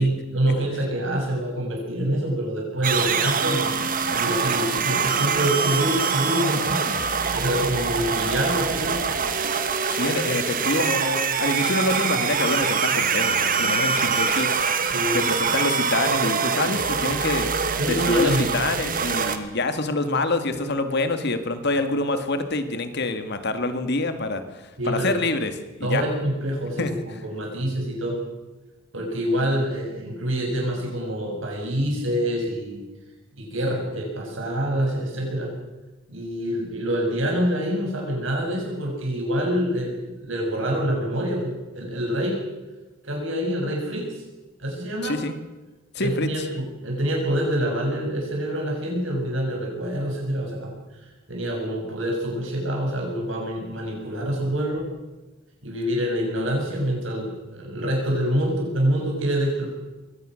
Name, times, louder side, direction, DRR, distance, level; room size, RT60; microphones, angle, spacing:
voice 1, 0.0-3.8 4.1-6.8 7.3-9.0 14.9-15.2 17.8-18.6 24.8-25.2 25.8-28.2 28.9-32.8 33.4-35.5 36.1-42.4 43.0-44.1 44.6-45.2 46.0-50.7 51.3-54.8 55.6-59.7, equal, 70° right, 0 dB, 7.2 m, -26 dB
sound 1, 2.8-19.4, right 6 dB, 45° right, 1.7 m, -24 dB
voice 2, 9.9-14.8 15.1-17.5 17.9-25.5 25.8-26.0 26.8-26.9 45.0-45.3 45.9-46.3, left 2 dB, 55° left, 8 dB, 2.0 m, -26 dB
22.5 x 17.5 x 6.5 m, 1.1 s
head